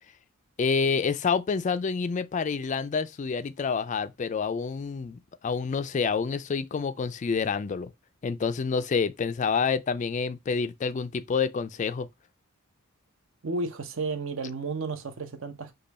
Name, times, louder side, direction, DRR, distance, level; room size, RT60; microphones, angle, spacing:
voice 1, 0.6-7.9 8.2-12.1, left 5 dB, 35° left, 0.3 m, -28 dB
voice 2, 13.4-15.7, right 3 dB, 65° right, 0.8 m, -32 dB
5.3 x 2.3 x 4.0 m
head